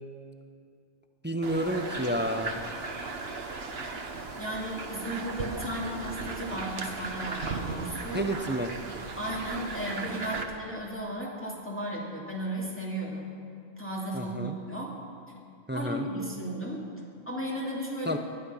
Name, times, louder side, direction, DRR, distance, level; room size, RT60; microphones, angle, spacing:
voice 1, 1.2-2.6 8.1-8.7 14.1-14.5 15.7-16.1 18.1-18.2, right 1 dB, 15° right, 6 dB, 0.5 m, -30 dB
sound 1, 1.4-10.4, right 3 dB, 55° right, 1.3 m, -37 dB
voice 2, 4.4-8.3 9.2-13.3 13.8-14.9 15.7-16.8 17.3-18.2, right 1 dB, 10° left, -5 dB, 2.3 m, -35 dB
19.5 x 12.0 x 5.6 m, 2.3 s
omnidirectional pair, 1.3 m